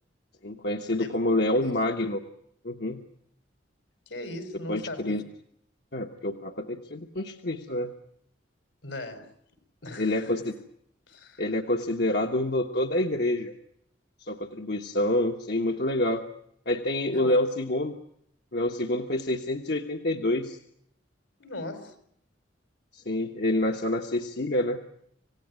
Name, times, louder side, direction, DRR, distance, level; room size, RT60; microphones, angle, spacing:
voice 1, 0.4-2.2 2.6-3.0 4.7-5.2 5.9-7.9 10.0-10.5 11.4-13.5 14.2-16.2 16.7-18.0 18.5-20.6 22.9-24.8, left 1 dB, 60° left, 4 dB, 1.4 m, -27 dB
voice 2, 1.0-1.7 4.1-5.3 8.8-9.3 9.8-10.3 11.1-11.5 17.1-17.4 21.4-21.9, left 1 dB, 85° left, 8 dB, 5.0 m, -39 dB
27.5 x 17.5 x 9.6 m, 0.74 s
head